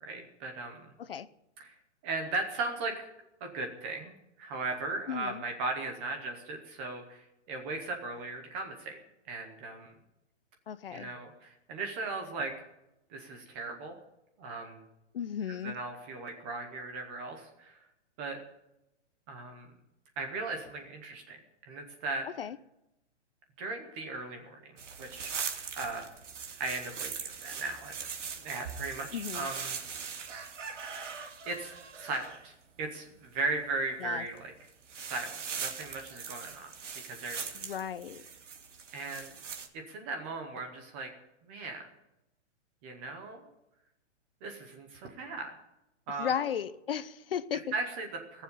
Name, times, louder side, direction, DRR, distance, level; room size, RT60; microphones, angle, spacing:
voice 1, 0.0-0.9 1.6-1.7 2.0-3.1 3.4-9.0 9.3-9.9 10.9-12.5 13.1-13.9 14.4-14.8 15.5-17.8 18.2-18.4 19.3-19.7 20.2-21.4 21.7-22.3 23.6-25.3 25.7-26.0 26.6-27.1 27.4-27.9 28.4-29.8 31.0-31.7 32.0-34.5 34.9-36.7 37.0-37.7 38.9-39.3 39.9-41.1 41.4-41.9 42.8-43.5 44.4-45.5 46.1-46.3 47.7-48.4, right 3 dB, 10° right, 0.7 m, -37 dB
voice 2, 5.1-5.4 10.7-11.1 15.1-15.8 22.4-22.6 29.1-29.5 34.0-34.2 37.5-38.2 46.2-47.6, left 8 dB, 50° left, 0.8 m, -35 dB
sound 1, 24.8-32.4 34.2-34.4 34.7-39.7, right 6 dB, 90° right, 2.6 m, -41 dB
19.0 x 7.3 x 9.8 m
hypercardioid pair, 180°, 36 cm